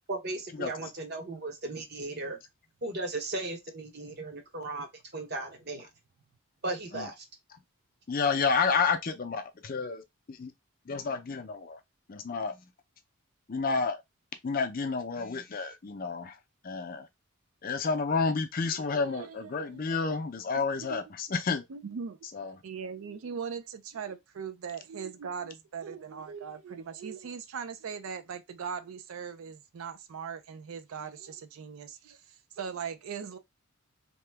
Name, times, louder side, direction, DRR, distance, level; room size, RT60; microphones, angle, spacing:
voice 1, 0.1-2.4 2.8-4.9 5.1-5.9 6.6-7.2, right 2 dB, 45° right, 0.8 m, -36 dB
voice 2, 8.1-10.0 10.3-10.5 10.9-11.8 12.1-12.5 13.5-14.0 14.4-16.3 16.6-17.1 17.6-21.6 22.3-22.5, left 4 dB, 40° left, 0.4 m, -30 dB
voice 3, 18.6-19.8 20.5-20.6 20.9-21.0 21.7-22.2 22.6-33.4, right 6 dB, 70° right, 0.4 m, -40 dB
2.9 x 2.2 x 3.3 m
head